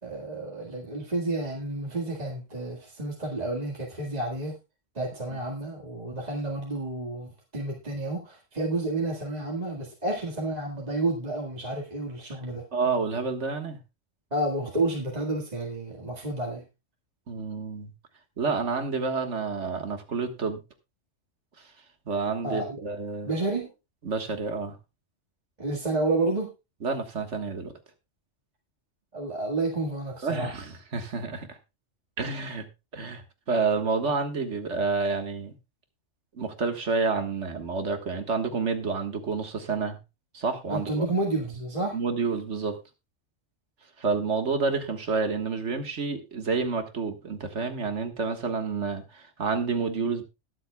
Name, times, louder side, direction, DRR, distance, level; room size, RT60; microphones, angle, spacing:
voice 1, 0.0-4.6 5.0-12.7 14.3-16.6 22.4-22.8 23.2-23.7 25.6-26.5 29.1-30.6 40.7-42.0, right 2 dB, 35° right, 1.9 m, -30 dB
voice 2, 12.7-13.8 17.3-17.9 18.4-20.6 22.1-23.3 24.0-24.7 26.8-27.7 30.2-31.6 32.2-32.7 32.9-35.5 36.4-40.0 40.3-41.1 41.9-42.8 44.0-50.2, right 4 dB, 70° right, 1.8 m, -29 dB
20.5 x 7.6 x 2.3 m
omnidirectional pair, 1.3 m